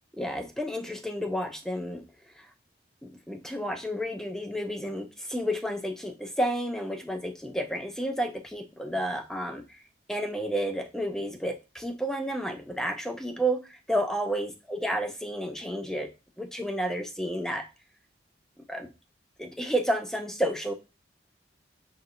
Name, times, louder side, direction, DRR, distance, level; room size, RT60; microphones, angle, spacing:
voice 1, 0.2-2.0 2.4-2.5 3.0-9.8 10.1-16.1 16.4-17.7 18.7-18.9 19.4-20.7, equal, 5° left, 6 dB, 0.4 m, -31 dB
6.3 x 2.8 x 2.5 m, 0.29 s
head